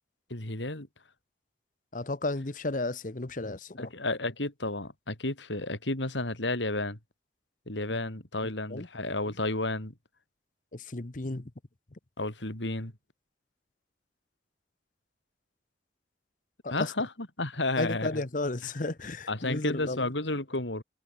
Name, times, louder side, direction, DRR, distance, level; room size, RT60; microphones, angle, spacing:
voice 1, 0.3-0.9 3.8-7.0 7.7-9.9 12.2-12.9 16.7-17.1 17.4-18.2 19.3-20.8, left 2 dB, 90° left, 4.1 m, -32 dB
voice 2, 1.9-3.9 7.9-8.0 8.7-8.9 10.7-11.5 11.9-12.0 16.6-16.9 17.8-20.1, left 2 dB, 45° left, 1.0 m, -33 dB
head